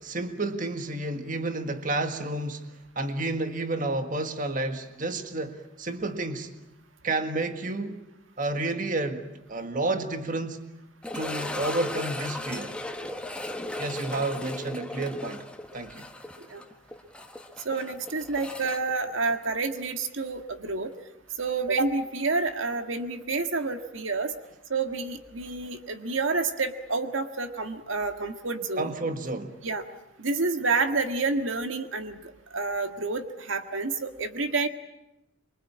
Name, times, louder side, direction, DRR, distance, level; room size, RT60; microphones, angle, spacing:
voice 1, 0.0-2.7 3.0-6.5 7.0-8.0 8.4-10.6 11.1-12.8 13.8-15.5 15.7-16.1 28.8-29.6, right 2 dB, 40° right, 7 dB, 1.8 m, -30 dB
sound 1, 11.0-20.0 20.2-20.3 20.9-21.0 23.6-23.7, left 1 dB, 5° left, 1.4 m, -37 dB
voice 2, 17.7-20.9 21.4-24.3 24.7-28.9 29.6-29.8 30.2-32.2 32.5-34.7, right 3 dB, 80° right, 7 dB, 1.8 m, -29 dB
25.5 x 24.0 x 8.7 m, 0.91 s
head